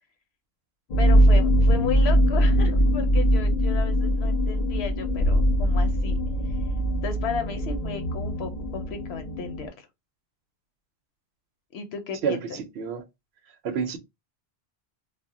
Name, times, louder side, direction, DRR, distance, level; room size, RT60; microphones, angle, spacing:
sound 1, 0.9-9.7, equal, 50° left, 0.7 m, -22 dB
voice 1, 1.0-6.2 7.0-9.9 11.7-12.6, left 6 dB, 80° left, 0.8 m, -34 dB
voice 2, 12.2-13.0 13.6-14.0, right 6 dB, 75° right, 0.8 m, -29 dB
2.1 x 2.0 x 3.5 m
omnidirectional pair, 1.1 m